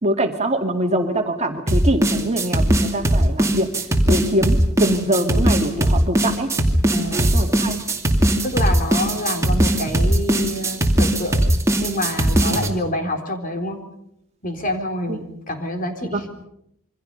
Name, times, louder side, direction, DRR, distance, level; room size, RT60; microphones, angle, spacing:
voice 1, 0.0-3.7 4.1-6.5 7.2-7.8 15.1-15.2 16.1-16.2, right 1 dB, 30° right, 4 dB, 2.4 m, -23 dB
sound 1, 1.7-12.7, right 1 dB, 15° right, 2.6 m, -18 dB
voice 2, 6.9-7.3 8.4-11.4 11.8-13.8 14.4-16.3, left 1 dB, 40° left, 5 dB, 3.9 m, -27 dB
28.0 x 24.5 x 5.5 m, 0.75 s
head